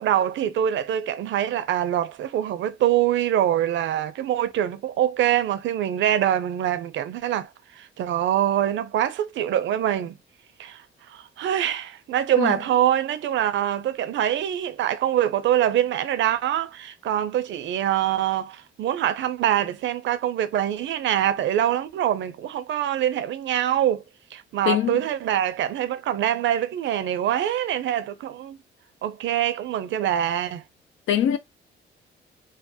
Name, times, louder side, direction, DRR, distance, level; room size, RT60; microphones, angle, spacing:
voice 1, 0.0-7.5 7.8-10.2 10.6-10.8 11.1-24.0 24.3-28.6 29.0-30.6, right 11 dB, 70° right, 0.5 m, -24 dB
voice 2, 24.7-25.0 31.1-31.4, left 10 dB, 75° left, 0.6 m, -22 dB
3.2 x 2.0 x 2.8 m
cardioid pair, 90°, 20 cm